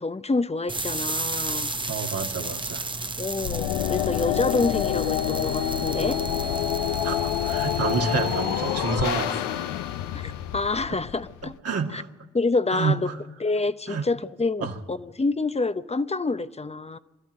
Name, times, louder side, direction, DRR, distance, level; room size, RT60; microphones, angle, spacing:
voice 1, 0.0-1.7 3.2-6.2 10.1-11.5 11.9-12.0 12.3-13.1 13.4-17.0, left 3 dB, 20° left, 0.9 m, -27 dB
sound 1, 0.7-8.6, right 3 dB, 15° right, 0.9 m, -34 dB
voice 2, 1.9-2.9 7.0-9.6 10.9-11.0 11.4-12.1 12.7-13.2 13.9-14.1 14.6-14.8, right 5 dB, 55° right, 2.0 m, -29 dB
sound 2, 3.4-11.5, left 13 dB, 75° left, 0.6 m, -27 dB
sound 3, 4.6-10.3, right 3 dB, 55° left, 1.1 m, -39 dB
22.5 x 13.5 x 9.0 m
hypercardioid pair, 40°, 30 cm